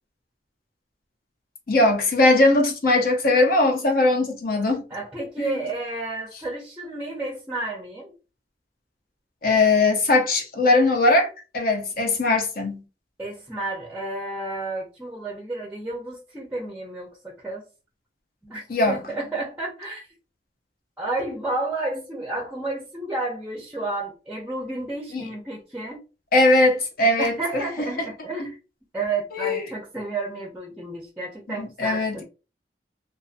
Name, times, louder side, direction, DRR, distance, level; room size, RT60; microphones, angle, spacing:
voice 1, 1.7-4.8 5.4-5.6 9.4-11.3 11.5-12.8 18.7-19.0 25.1-25.2 26.3-27.6 29.3-29.6 31.6-32.2, left 2 dB, 55° left, 0.7 m, -20 dB
voice 2, 4.9-8.1 13.2-17.6 18.4-20.0 21.0-26.0 27.2-28.6 28.9-32.2, right 2 dB, 10° right, 0.6 m, -31 dB
2.5 x 2.5 x 2.5 m
head